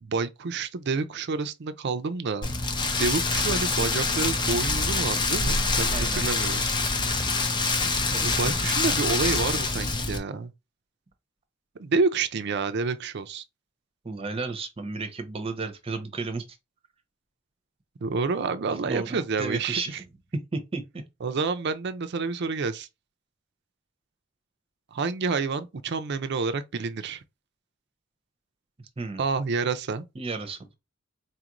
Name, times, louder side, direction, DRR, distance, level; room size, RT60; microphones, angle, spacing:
voice 1, 0.0-2.6 2.8-6.6 8.2-10.5 11.8-13.4 18.0-20.0 21.2-22.9 24.9-27.2 29.2-30.0, right 4 dB, 60° right, 0.5 m, -28 dB
Rain, 2.4-10.2, left 3 dB, 25° left, 0.5 m, -25 dB
voice 2, 5.9-6.3 8.1-8.3 14.0-16.4 18.9-19.9 20.5-20.8 29.0-29.2 30.2-30.8, right 3 dB, 30° right, 0.8 m, -33 dB
4.2 x 2.5 x 2.9 m
head